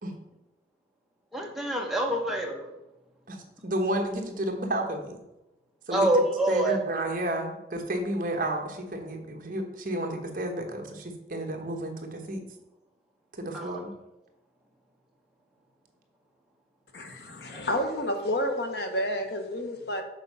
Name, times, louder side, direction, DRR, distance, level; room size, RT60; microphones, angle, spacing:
voice 1, 1.3-2.7 5.9-6.8 13.5-13.8 17.5-17.9, right 1 dB, ahead, 1.0 m, -27 dB
voice 2, 3.3-5.2 5.9-6.1 6.5-12.4 13.3-13.9, right 1 dB, 45° right, 1.0 m, -31 dB
voice 3, 16.9-20.0, left 1 dB, 60° left, 0.9 m, -30 dB
6.7 x 4.5 x 5.4 m
head